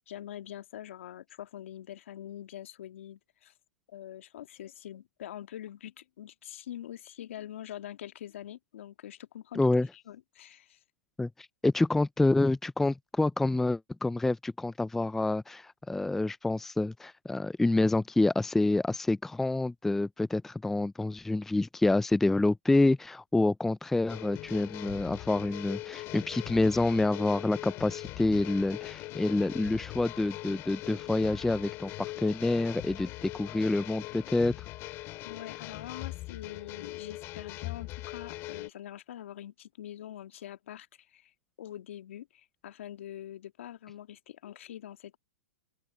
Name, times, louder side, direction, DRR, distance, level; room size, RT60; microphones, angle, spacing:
voice 1, 0.1-3.5 3.9-9.6 9.9-10.8 35.3-41.3 41.6-45.2, left 11 dB, 65° left, 1.9 m, -44 dB
voice 2, 9.5-9.9 11.2-11.3 11.6-34.5, left 2 dB, 5° left, 0.4 m, -27 dB
sound 1, 24.1-38.7, left 19 dB, 35° left, 6.1 m, -41 dB
open air
hypercardioid pair, 135°, 7 cm